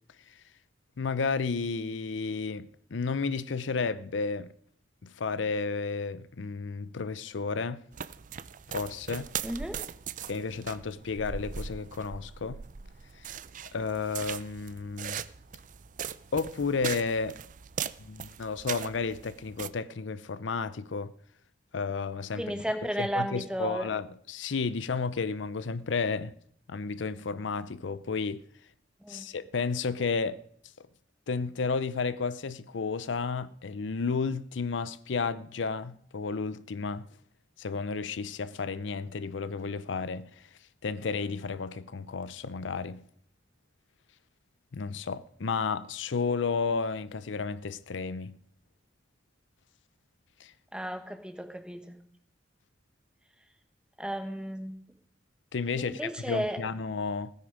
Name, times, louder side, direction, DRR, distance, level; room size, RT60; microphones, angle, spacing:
voice 1, 1.0-4.5 5.0-7.8 8.7-9.3 10.3-12.6 13.2-13.3 13.7-15.2 16.3-17.4 18.0-21.1 21.7-22.4 23.0-26.3 26.7-28.4 29.1-30.4 31.3-37.1 37.6-40.3 40.8-43.0 44.7-48.3 50.4-50.5 55.5-57.3, left 4 dB, 90° left, 0.6 m, -32 dB
sound 1, 7.9-19.7, right 8 dB, 45° right, 0.5 m, -40 dB
voice 2, 9.4-9.8 22.3-23.9 29.0-29.3 50.7-52.0 54.0-54.8 55.8-56.6, equal, 5° right, 1.3 m, -34 dB
16.0 x 9.9 x 5.0 m
head